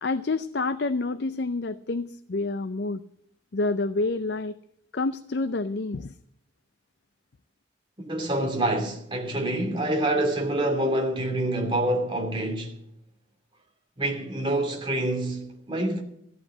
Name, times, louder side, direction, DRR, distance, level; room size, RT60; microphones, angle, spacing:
voice 1, 0.0-3.0 3.5-4.5 4.9-6.1, left 3 dB, 60° left, 0.5 m, -28 dB
voice 2, 8.0-12.8 14.0-16.0, right 1 dB, 25° right, 2.7 m, -26 dB
14.5 x 8.8 x 7.6 m
head